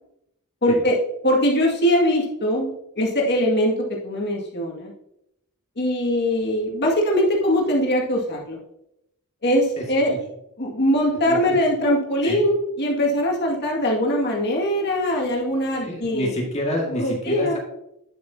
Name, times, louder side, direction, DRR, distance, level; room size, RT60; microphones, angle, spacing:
voice 1, 0.6-1.0 1.2-4.9 5.8-8.6 9.4-10.1 10.6-16.3 17.0-17.6, equal, 50° left, -1 dB, 2.1 m, -21 dB
voice 2, 9.8-10.2 11.3-11.6 12.2-12.4 15.8-17.6, equal, 30° left, -1 dB, 2.0 m, -28 dB
9.5 x 7.8 x 2.8 m, 0.80 s
head